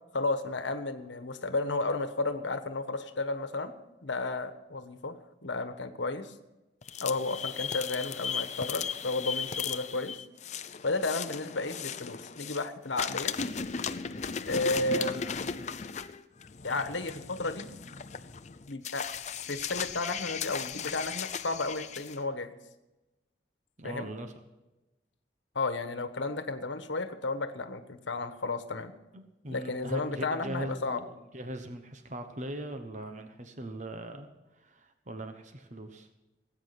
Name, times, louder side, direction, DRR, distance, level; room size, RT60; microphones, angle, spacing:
voice 1, 0.1-3.7 4.0-6.3 7.0-10.2 10.8-13.3 14.5-15.5 16.6-17.7 18.7-19.1 19.5-22.5 23.8-24.1 25.5-28.9 29.5-31.0, left 3 dB, 90° left, 9 dB, 1.2 m, -33 dB
sound 1, 6.8-12.7 12.9-22.2, left 6 dB, 40° left, 0.6 m, -36 dB
voice 2, 23.8-24.3 29.1-31.0 31.3-34.3 34.6-36.1, right 1 dB, 40° right, 7 dB, 1.2 m, -40 dB
18.5 x 8.9 x 5.9 m, 1.0 s
head